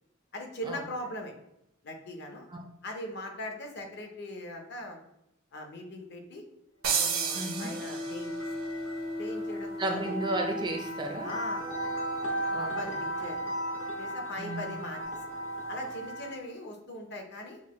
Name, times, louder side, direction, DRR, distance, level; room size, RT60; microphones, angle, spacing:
voice 1, 0.3-1.3 1.8-2.5 2.8-5.0 5.5-6.4 7.0-8.3 9.2-10.2 11.2-12.3 12.6-13.5 14.0-15.0 15.7-17.6, left 1 dB, 55° left, 3 dB, 0.7 m, -40 dB
sound 1, 6.8-8.5, right 6 dB, 85° right, 0.8 m, -31 dB
sound 2, 7.0-16.5, equal, 70° left, 1.1 m, -35 dB
voice 2, 7.3-7.7 9.8-11.3 12.5-12.8 14.4-14.8, right 1 dB, 20° right, 3 dB, 0.4 m, -33 dB
6.3 x 2.1 x 3.0 m, 0.81 s
head